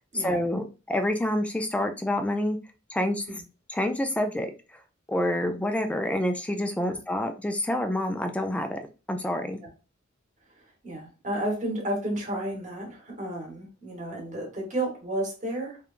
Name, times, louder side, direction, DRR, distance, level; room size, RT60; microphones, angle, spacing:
voice 1, 0.1-2.6 2.9-3.2 3.7-4.5 5.1-8.8 9.1-9.6, left 1 dB, 5° left, 6 dB, 0.3 m, -27 dB
voice 2, 10.6-15.8, right 1 dB, 35° right, 0 dB, 1.1 m, -32 dB
3.0 x 2.2 x 2.4 m, 0.33 s
head